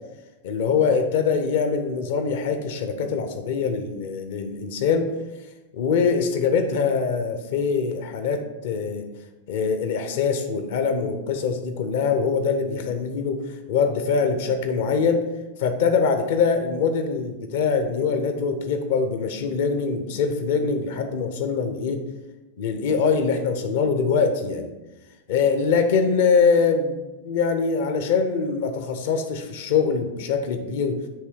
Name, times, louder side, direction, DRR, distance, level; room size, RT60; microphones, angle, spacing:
voice 1, 0.4-5.1 5.7-9.0 9.5-13.4 13.7-15.2 15.6-22.0 22.6-24.7 25.3-31.0, left 5 dB, 55° left, 7 dB, 0.7 m, -23 dB
7.7 x 3.3 x 4.6 m, 1.1 s
figure-of-eight pair, 90°, 0 cm